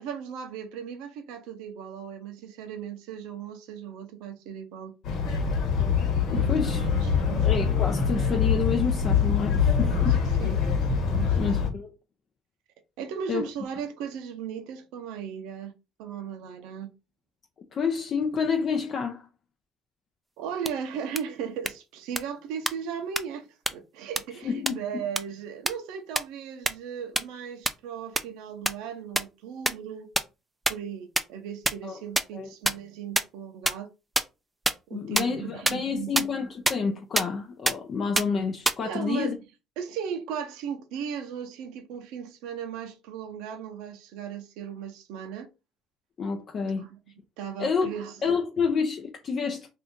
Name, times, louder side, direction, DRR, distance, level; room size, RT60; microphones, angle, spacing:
voice 1, 0.0-4.9 6.3-7.5 9.8-10.6 11.1-11.4 13.0-15.7 16.0-16.9 20.4-30.1 30.7-33.9 34.9-36.3 38.8-39.3 39.8-45.5 46.8-47.0 47.4-48.2, right 8 dB, 80° right, 0.6 m, -37 dB
sound 1, 5.0-11.7, left 6 dB, 65° left, 1.2 m, -24 dB
voice 2, 6.3-6.9 7.4-10.2 11.4-11.9 13.3-13.4 17.7-19.3 24.4-25.0 31.8-32.0 32.3-32.5 34.9-39.4 46.2-46.9 47.6-47.9 48.2-49.7, left 5 dB, 45° left, 0.5 m, -29 dB
sound 2, 20.7-20.8 21.2-21.3 21.7-21.8 22.2-22.3 22.7-22.8 23.2-23.3 23.7-23.8 24.2-24.3 24.7-24.8 25.2-25.3 25.7-25.8 26.2-26.3 26.7-26.8 27.2-27.3 27.7-27.8 28.2-28.3 28.7-28.8 29.2-29.3 29.7-29.8 30.2-30.3 30.7-30.8 31.2-31.3 31.6-31.7 32.2-32.3 32.7-32.8 33.2-33.3 33.7-33.8 34.2-34.3 34.7-34.8 35.2-35.3 35.7-35.8 36.2-36.3 36.7-36.8 37.2-37.3 37.7-37.8 38.2-38.3 38.7-38.8, right 1 dB, 10° right, 0.4 m, -22 dB
2.7 x 2.5 x 3.5 m
supercardioid pair, 85°, 0 cm